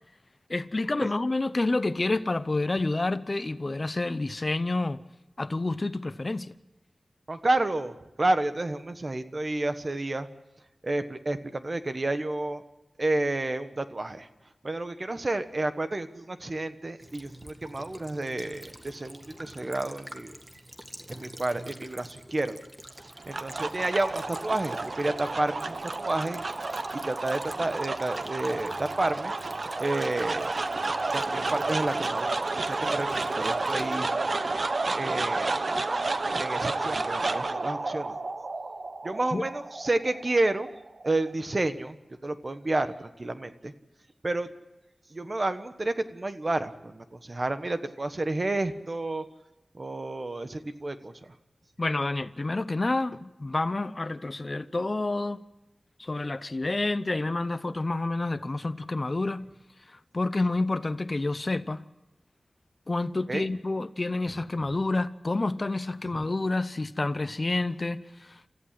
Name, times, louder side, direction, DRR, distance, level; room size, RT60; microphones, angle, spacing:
voice 1, 0.5-5.0 5.4-6.5 39.3-39.4 51.8-55.4 56.0-59.5 59.9-61.8 62.9-68.5, left 2 dB, 40° left, 0.7 m, -29 dB
voice 2, 7.3-10.3 10.8-12.6 13.0-14.3 14.6-20.3 21.1-22.6 23.2-26.4 26.9-29.3 29.8-30.5 31.1-34.1 34.9-35.7 36.4-38.2 39.0-40.7 41.0-43.7 44.2-44.5 45.1-49.2 49.7-51.1 63.3-63.4 66.1-66.3, right 2 dB, 40° right, 1.3 m, -30 dB
Child speech kid speaking / Bird vocalization bird call bird song / Stream, 17.0-34.0, right 1 dB, 15° right, 1.8 m, -47 dB
sound 1, 23.0-41.3, right 3 dB, 55° right, 1.0 m, -31 dB
28.0 x 14.5 x 7.6 m
wide cardioid pair, 80°, 0 cm